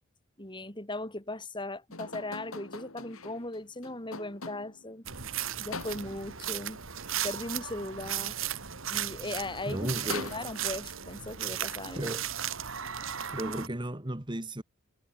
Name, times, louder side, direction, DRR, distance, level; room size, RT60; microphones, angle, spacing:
voice 1, 0.4-5.1 5.6-6.8 7.2-8.4 8.9-10.0 10.3-12.1, left 2 dB, 20° left, 5.2 m, -38 dB
sound 1, 1.9-4.9 5.7-6.4 9.0-9.1 9.4-11.0, left 4 dB, 80° left, 3.9 m, -43 dB
sound 2, 5.0-13.7, right 10 dB, 65° right, 2.4 m, -36 dB
voice 2, 9.7-10.4 12.0-12.3 13.3-14.6, right 1 dB, 20° right, 1.8 m, -34 dB
head